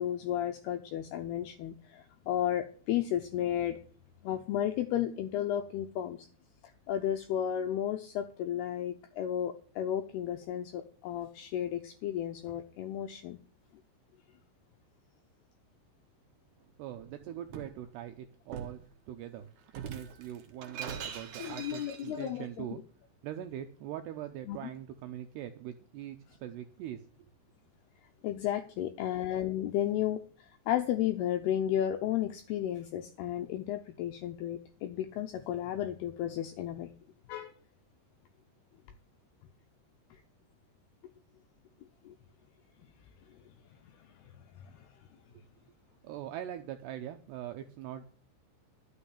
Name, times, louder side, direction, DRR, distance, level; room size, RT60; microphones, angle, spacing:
voice 1, 0.0-3.8 4.2-6.3 6.9-13.4 21.4-22.7 24.5-24.6 28.2-36.9 37.3-37.5 42.1-42.2 44.0-44.1 44.6-44.9, left 11 dB, 80° left, 6 dB, 2.3 m, -33 dB
voice 2, 16.8-19.5 19.7-22.8 23.2-27.0 46.0-48.0, right 11 dB, 80° right, 7 dB, 2.5 m, -42 dB
Shatter, 16.9-17.8 18.5-18.8 19.7-22.3, right 7 dB, 60° right, 2.1 m, -43 dB
11.5 x 6.3 x 8.3 m, 0.43 s
omnidirectional pair, 5.5 m